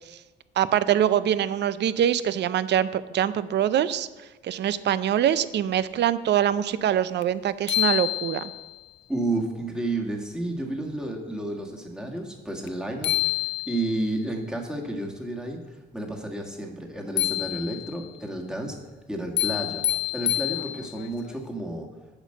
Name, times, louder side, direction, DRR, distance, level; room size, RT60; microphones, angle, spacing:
voice 1, 0.6-8.5, right 10 dB, 60° right, 15 dB, 0.5 m, -24 dB
sound 1, 7.2-7.3 7.7-8.8 12.7-12.8 13.0-14.1 17.2-18.1 19.4-21.1, left 14 dB, 65° left, 0.4 m, -27 dB
voice 2, 9.1-13.3 13.7-15.6 15.9-18.8 19.1-19.8 20.1-21.9, right 2 dB, 5° right, 1 dB, 1.6 m, -31 dB
8.2 x 5.1 x 6.5 m, 1.2 s
cardioid pair, 90°, 20 cm